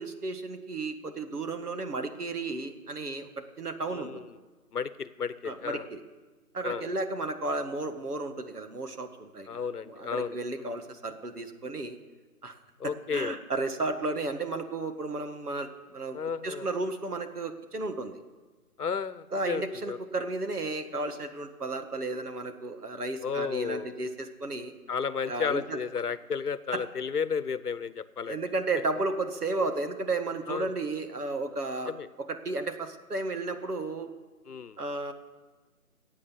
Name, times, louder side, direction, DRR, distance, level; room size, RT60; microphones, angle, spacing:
voice 1, 0.0-4.2 5.4-6.0 6.5-12.0 12.4-12.5 12.8-18.2 19.3-24.7 25.3-25.8 26.7-26.8 28.2-31.9 32.2-34.1 34.8-35.1, right 2 dB, 80° right, 7 dB, 1.9 m, -33 dB
voice 2, 3.9-4.3 4.7-5.9 6.6-6.8 9.5-10.7 12.8-13.4 16.1-16.7 18.8-20.0 23.2-24.0 24.9-28.4 30.5-30.7 31.9-32.1 34.5-34.8, left 6 dB, 80° left, 16 dB, 0.9 m, -33 dB
15.0 x 8.5 x 8.4 m, 1.3 s
figure-of-eight pair, 170°, 45 cm